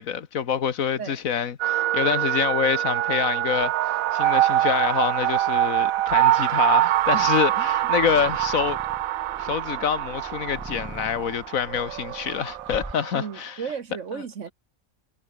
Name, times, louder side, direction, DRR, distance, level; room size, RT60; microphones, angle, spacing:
voice 1, 0.0-3.7 4.1-8.8 9.4-13.5, left 8 dB, 75° left, 1.6 m, -26 dB
sound 1, 1.6-11.6, right 1 dB, 35° right, 8.2 m, -56 dB
ambienta-soundtrack travelizer-bollywoodtocome, 1.6-13.2, right 14 dB, 80° right, 1.0 m, -24 dB
sound 2, 3.2-12.9, right 1 dB, 10° right, 1.1 m, -45 dB
voice 2, 13.1-14.5, right 6 dB, 60° right, 1.6 m, -34 dB
omnidirectional pair, 1.4 m